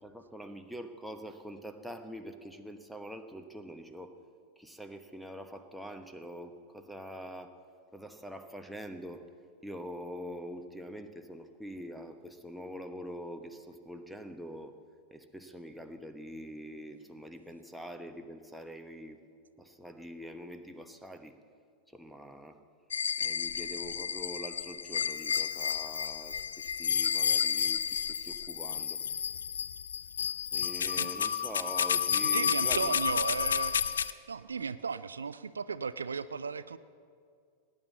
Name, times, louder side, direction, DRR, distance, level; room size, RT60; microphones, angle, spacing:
voice 1, 0.0-4.1 4.6-7.5 7.9-9.3 9.6-14.8 15.1-19.2 19.6-21.4 21.9-22.6 23.2-29.0 30.5-33.2, equal, ahead, 6 dB, 1.1 m, -44 dB
sound 1, 22.9-34.1, left 7 dB, 70° left, 0.5 m, -31 dB
voice 2, 32.3-36.8, right 5 dB, 75° right, 15 dB, 0.4 m, -36 dB
18.0 x 9.8 x 7.3 m, 2.2 s
figure-of-eight pair, 90°, 0 cm